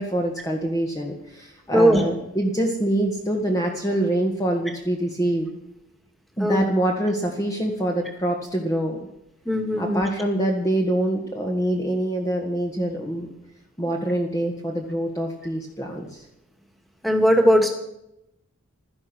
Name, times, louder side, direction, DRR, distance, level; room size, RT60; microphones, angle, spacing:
voice 1, 0.0-5.6 6.4-9.0 9.8-13.3 13.8-16.2, right 1 dB, 15° left, 1 dB, 1.8 m, -25 dB
voice 2, 9.5-10.0 17.0-17.7, equal, ahead, 3 dB, 2.4 m, -18 dB
16.0 x 13.5 x 6.3 m, 0.84 s
head